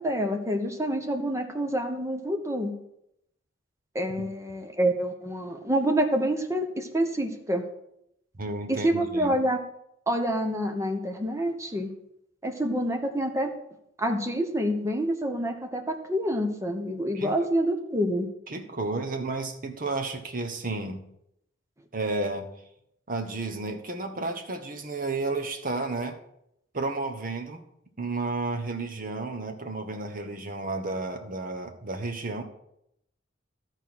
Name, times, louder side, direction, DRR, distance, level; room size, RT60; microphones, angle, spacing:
voice 1, 0.0-2.7 3.9-7.6 8.7-9.6 10.1-11.9 12.4-13.5 14.0-18.3, right 1 dB, 15° right, 4 dB, 1.0 m, -27 dB
voice 2, 8.4-9.3 17.1-17.3 18.5-21.1 21.9-22.6 23.1-26.2 26.7-27.6 28.0-32.4, right 3 dB, 45° right, 6 dB, 1.1 m, -32 dB
12.5 x 4.5 x 6.3 m, 0.78 s
head